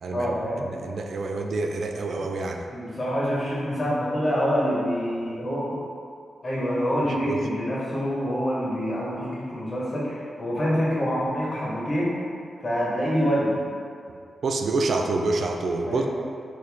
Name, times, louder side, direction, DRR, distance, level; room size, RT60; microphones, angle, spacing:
voice 1, 0.1-0.6 2.7-5.8 6.4-12.1 12.6-13.6 15.8-16.1, equal, 40° left, -6 dB, 1.2 m, -26 dB
voice 2, 0.6-2.6 7.3-7.4 14.4-16.1, right 3 dB, 65° right, 3 dB, 0.3 m, -27 dB
4.4 x 2.7 x 3.5 m, 2.3 s
cardioid pair, 80°, 0 cm